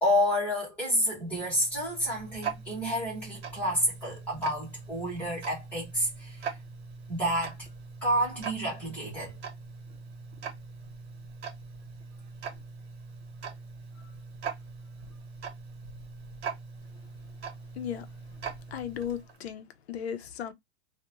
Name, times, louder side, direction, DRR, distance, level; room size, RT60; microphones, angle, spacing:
voice 1, 0.0-6.5 7.1-7.5 8.0-9.3, equal, 5° left, 0.7 m, -29 dB
Tick-tock, 1.1-19.4, right 5 dB, 65° right, 1.0 m, -42 dB
voice 2, 18.7-20.5, left 9 dB, 65° left, 0.5 m, -36 dB
2.2 x 2.1 x 2.8 m
supercardioid pair, 180°, 35 cm